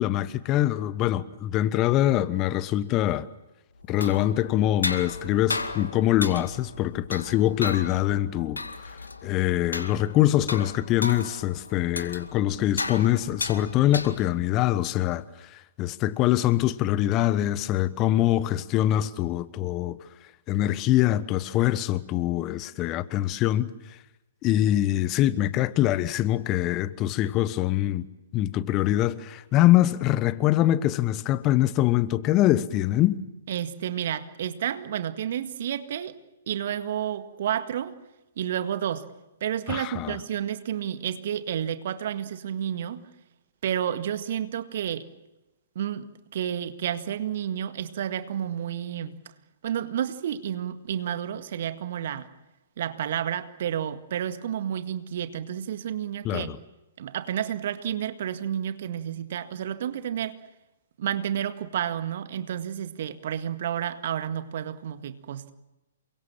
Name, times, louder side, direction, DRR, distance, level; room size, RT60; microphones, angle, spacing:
voice 1, 0.0-3.3 3.9-8.6 9.2-15.2 15.5-20.0 20.5-23.7 24.4-28.1 28.3-33.2 39.7-40.2 56.2-56.6, left 14 dB, 30° left, 1.2 m, -24 dB
sound 1, 3.8-14.5, left 3 dB, 80° left, 2.2 m, -35 dB
voice 2, 33.5-36.2 36.5-37.9 38.4-39.0 39.4-43.0 43.6-45.1 45.8-49.1 49.6-52.3 52.8-56.6 57.0-60.4 61.0-65.5, right 10 dB, 55° right, 1.9 m, -30 dB
29.0 x 24.0 x 7.5 m
figure-of-eight pair, 115°, 0 cm